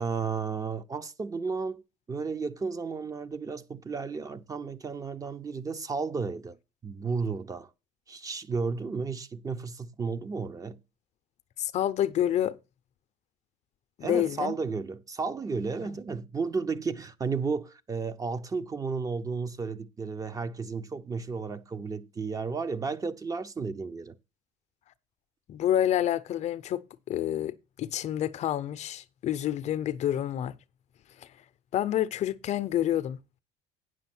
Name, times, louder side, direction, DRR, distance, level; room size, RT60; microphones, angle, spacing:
voice 1, 0.0-1.8 2.1-6.6 6.8-7.7 8.1-10.8 14.0-24.2, right 4 dB, 25° right, 0.7 m, -33 dB
voice 2, 11.6-12.6 14.0-14.6 15.8-16.0 25.5-30.6 31.2-31.3 31.7-33.4, left 11 dB, 50° left, 0.6 m, -28 dB
8.8 x 6.3 x 5.9 m
cardioid pair, 110°, 14 cm